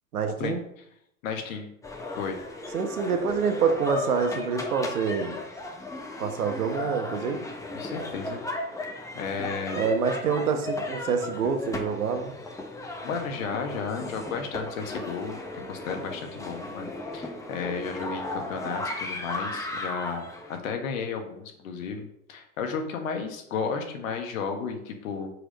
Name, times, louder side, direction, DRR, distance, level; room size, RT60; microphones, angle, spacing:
voice 1, 0.1-0.6 2.7-5.4 6.2-7.4 9.7-12.3, right 5 dB, 80° right, 6 dB, 1.3 m, -26 dB
voice 2, 1.2-1.7 2.2-2.4 7.8-8.4 9.2-9.8 13.0-25.3, left 5 dB, 65° left, 4 dB, 1.6 m, -33 dB
Haunted House Tour, 1.8-20.6, left 2 dB, 5° left, 0.9 m, -36 dB
4.9 x 4.9 x 5.2 m, 0.73 s
hypercardioid pair, 105°, 44 cm